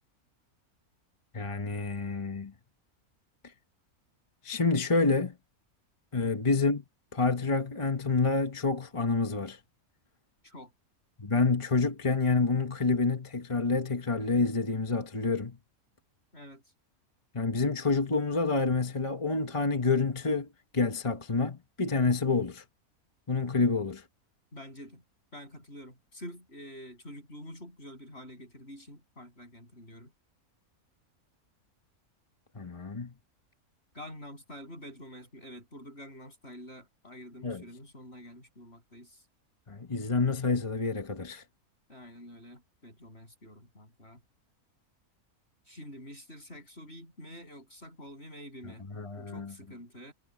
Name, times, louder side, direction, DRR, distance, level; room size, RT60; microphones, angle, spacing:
voice 1, 1.3-2.5 4.4-5.3 6.1-6.8 7.1-9.6 11.2-15.6 17.3-20.5 20.7-22.6 23.3-24.0 32.5-33.1 37.4-37.6 39.7-41.4 48.9-49.5, left 4 dB, 25° left, 1.0 m, -28 dB
voice 2, 24.5-25.0 25.3-30.1 33.9-39.2 41.9-44.2 45.7-48.9 49.2-50.1, equal, 45° left, 7.8 m, -47 dB
omnidirectional pair, 1.5 m